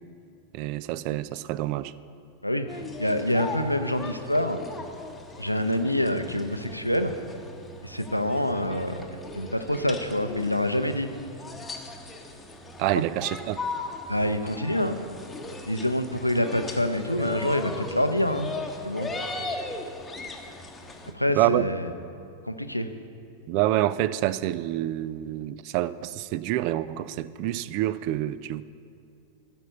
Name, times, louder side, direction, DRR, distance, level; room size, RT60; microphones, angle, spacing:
voice 1, 0.5-1.9 12.8-13.6 21.3-21.6 23.5-28.6, right 14 dB, 45° right, 17 dB, 0.3 m, -27 dB
voice 2, 2.4-4.6 5.4-7.1 7.8-11.1 12.9-13.0 14.1-15.0 15.7-18.5 18.8-19.1 21.1-21.9 22.4-22.9, left 1 dB, 90° left, 8 dB, 0.6 m, -26 dB
sound 1, 2.7-21.1, left 2 dB, 10° left, 1.0 m, -38 dB
14.5 x 5.3 x 7.0 m, 2.5 s
figure-of-eight pair, 90°, 0 cm